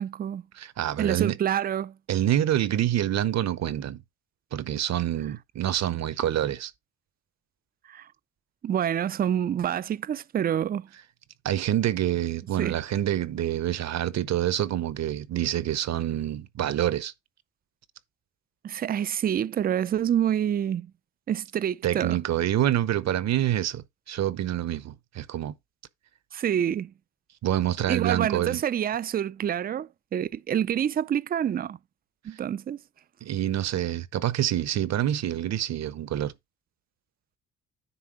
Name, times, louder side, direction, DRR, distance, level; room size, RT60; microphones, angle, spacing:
voice 1, 0.0-0.4 1.0-1.9 7.9-8.1 8.6-10.9 12.6-12.8 18.6-20.9 21.3-22.2 26.3-26.9 27.9-31.8 32.2-32.8, right 9 dB, 30° right, 0.4 m, -27 dB
voice 2, 0.6-1.3 2.1-4.0 4.5-6.7 11.4-17.1 21.8-25.5 27.4-28.6 33.2-36.3, right 12 dB, 60° right, 0.9 m, -27 dB
9.9 x 3.7 x 4.9 m
cardioid pair, 90°, 30 cm